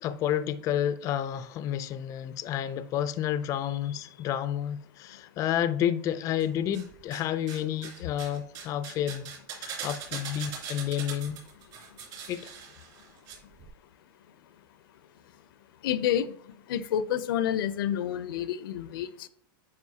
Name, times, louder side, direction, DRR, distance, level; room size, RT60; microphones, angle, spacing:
voice 1, 0.0-9.3 9.6-11.4 12.3-12.5, left 10 dB, 30° left, 0.4 m, -30 dB
sound 1, 6.4-7.2 7.5-13.3 13.6-13.7, right 7 dB, 40° right, 2.7 m, -41 dB
voice 2, 15.8-16.3 16.7-19.3, left 10 dB, 80° left, 0.5 m, -29 dB
9.4 x 4.8 x 2.8 m
supercardioid pair, 145°, 12 cm